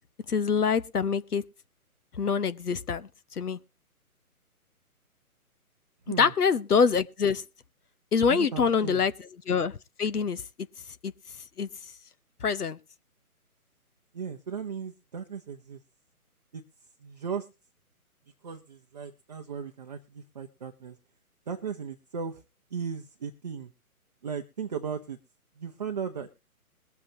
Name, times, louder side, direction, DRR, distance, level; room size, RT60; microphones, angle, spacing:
voice 1, 0.3-1.4 2.2-3.6 6.2-7.4 8.1-9.1 9.5-10.4 11.0-11.1 11.6-11.7 12.4-12.8, left 6 dB, 85° left, 0.9 m, -25 dB
voice 2, 8.3-9.1 14.1-15.8 16.5-16.6 17.0-17.5 18.4-21.0 21.5-22.4 22.7-23.7 24.2-25.2 25.6-26.3, right 6 dB, 30° right, 0.6 m, -36 dB
21.0 x 7.4 x 2.8 m
figure-of-eight pair, 145°, 45 cm